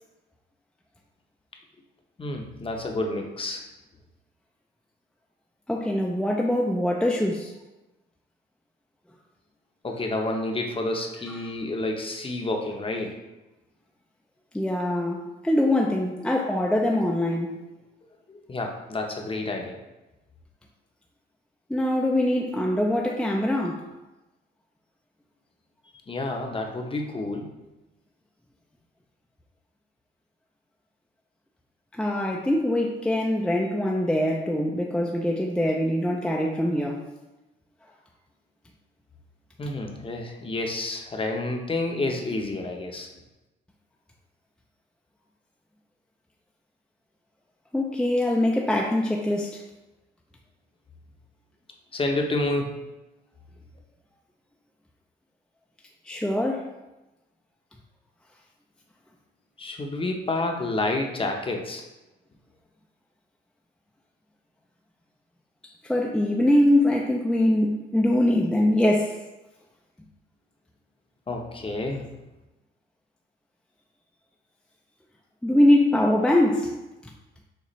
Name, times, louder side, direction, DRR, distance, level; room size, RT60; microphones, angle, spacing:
voice 1, 2.2-3.6 9.8-13.1 18.3-19.8 26.1-27.5 39.6-43.1 51.9-52.8 59.6-61.8 71.3-72.1, left 2 dB, 25° left, 2 dB, 0.8 m, -29 dB
voice 2, 5.7-7.5 11.3-11.4 14.5-17.6 21.7-23.8 31.9-37.0 47.7-49.6 56.1-56.7 65.8-69.2 75.4-76.7, left 1 dB, 5° left, 0 dB, 0.5 m, -23 dB
6.5 x 2.5 x 3.1 m, 1.0 s
cardioid pair, 90°, 20 cm